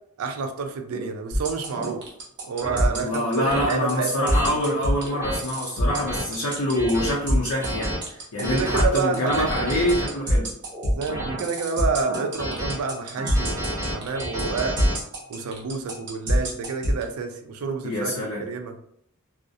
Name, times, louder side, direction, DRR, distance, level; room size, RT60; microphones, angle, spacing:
voice 1, 0.2-2.1 2.4-4.6 8.4-9.7 10.9-14.8 15.3-18.1 18.4-18.7, right 5 dB, 85° right, 5 dB, 0.4 m, -29 dB
sound 1, 0.9-1.1 1.7-1.9 2.6-2.8 3.5-3.7 4.3-4.5 5.0-5.4 5.9-6.2 6.7-7.1 7.6-8.0 8.4-8.8 9.3-10.1 10.7-11.4 12.1-12.7 13.2-14.9, equal, 10° right, 0.7 m, -30 dB
sound 2, 1.3-17.0, equal, 55° right, 0.8 m, -25 dB
voice 2, 2.9-10.5 17.8-18.4, left 1 dB, 80° left, -3 dB, 0.5 m, -25 dB
2.4 x 2.0 x 2.6 m, 0.69 s
head